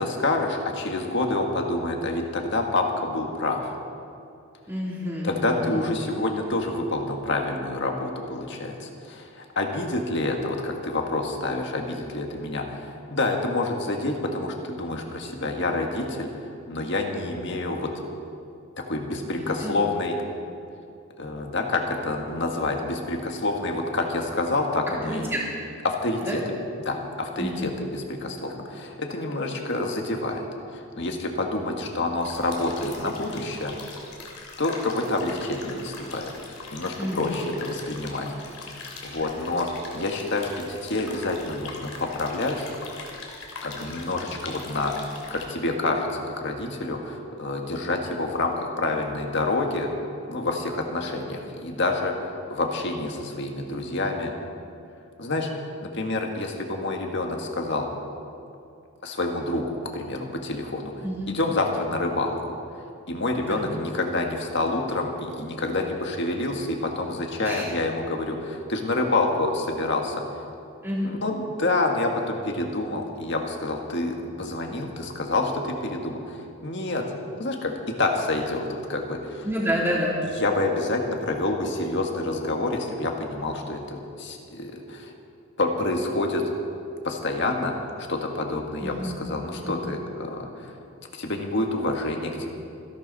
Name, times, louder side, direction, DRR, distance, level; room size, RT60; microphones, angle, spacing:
voice 1, 0.0-3.8 5.2-17.9 18.8-20.2 21.2-25.3 25.8-26.4 26.8-30.4 30.7-33.8 34.6-36.3 36.7-42.7 43.6-49.9 50.2-54.3 55.2-55.5 55.8-57.9 59.0-60.9 61.3-62.6 63.1-70.2 71.0-77.1 77.4-79.5 80.4-85.1 85.6-86.4 87.0-87.7 88.1-90.7 91.1-92.5, left 2 dB, 50° left, 2 dB, 1.7 m, -28 dB
voice 2, 4.7-5.8 19.2-19.8 25.0-25.4 26.2-26.4 27.4-27.7 37.0-37.4 61.0-61.3 63.5-63.7 67.4-67.6 70.8-71.1 79.4-80.1 88.8-89.2 89.5-89.7, equal, 10° right, -5 dB, 3.3 m, -29 dB
sound 1, 32.2-45.4, left 4 dB, 80° left, 3.0 m, -41 dB
26.5 x 11.5 x 4.2 m, 2.6 s
head